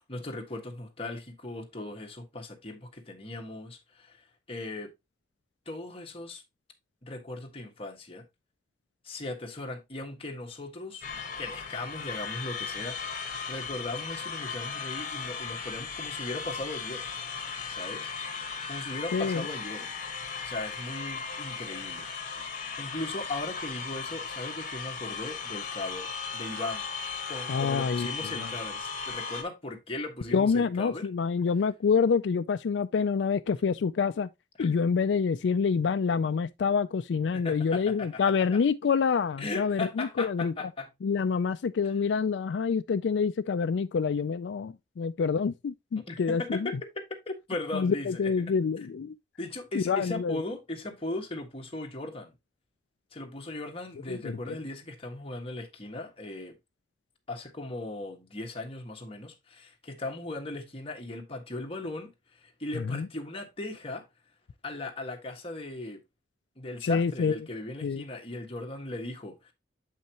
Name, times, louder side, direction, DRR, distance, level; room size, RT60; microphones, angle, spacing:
voice 1, 0.0-4.9 5.6-6.4 7.0-8.2 9.0-11.0 11.4-13.1 13.5-17.1 17.7-18.1 18.7-19.9 20.4-22.1 22.8-26.9 27.3-31.1 34.6-34.7 37.3-38.6 39.4-40.9 46.0-48.3 48.8-48.9 49.4-52.3 53.1-56.6 57.3-64.0 64.6-66.0 66.6-69.5, left 2 dB, 35° left, 1.5 m, -38 dB
sound 1, 11.0-29.4, left 5 dB, 50° left, 1.5 m, -37 dB
voice 2, 19.1-19.4 27.5-28.1 28.4-28.5 30.3-34.3 34.6-40.5 41.0-46.7 47.7-49.1 49.7-50.4 54.1-54.4 62.7-63.1 66.8-67.3 67.8-68.0, left 5 dB, 85° left, 0.4 m, -27 dB
7.8 x 5.5 x 2.9 m
head